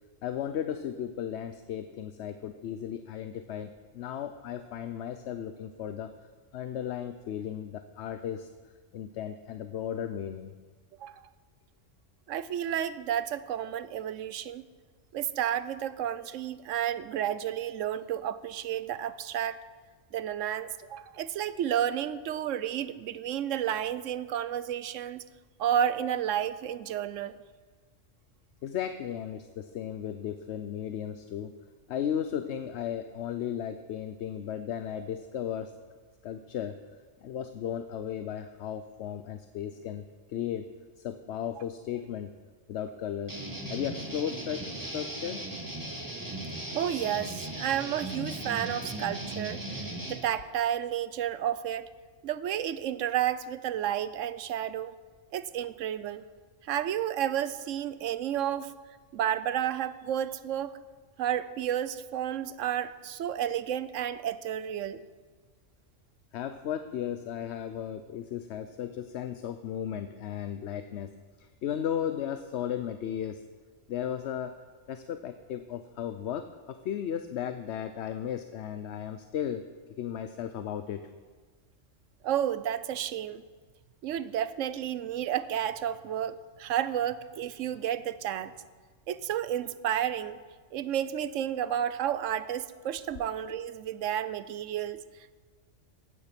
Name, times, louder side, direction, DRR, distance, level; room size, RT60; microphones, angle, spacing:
voice 1, 0.2-6.1 6.5-8.5 8.9-10.5 28.6-31.6 31.9-35.7 36.2-36.8 37.2-42.3 42.7-43.4 43.7-45.4 66.3-73.4 73.9-74.6 74.9-79.6 80.0-81.1, left 9 dB, 65° left, 10 dB, 0.9 m, -35 dB
voice 2, 12.3-14.6 15.1-19.6 20.1-25.2 25.6-27.4 46.7-49.6 50.1-51.9 52.2-54.9 55.3-56.2 56.6-58.7 59.1-60.8 61.2-65.0 82.2-83.4 84.0-88.5 89.1-90.4 90.7-95.0, right 10 dB, 80° right, 15 dB, 1.0 m, -31 dB
sound 1, 43.3-50.1, right 1 dB, 15° right, 2.0 m, -37 dB
15.0 x 9.7 x 5.9 m, 1.4 s
omnidirectional pair, 1.3 m